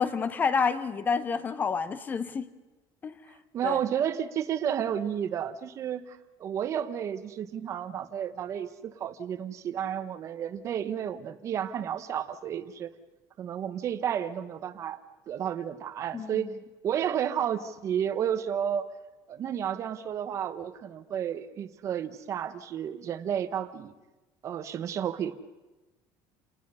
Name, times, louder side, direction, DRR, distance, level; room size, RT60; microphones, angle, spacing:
voice 1, 0.0-2.5 3.0-3.1 3.6-3.8 16.1-16.5, left 5 dB, 20° left, 14 dB, 0.8 m, -28 dB
voice 2, 3.5-12.9 13.4-15.0 15.3-16.5 16.8-18.9 19.3-23.9 24.4-25.3, right 9 dB, 30° right, 12 dB, 0.9 m, -32 dB
28.5 x 19.0 x 5.5 m, 1.1 s
cardioid pair, 175°, 10 cm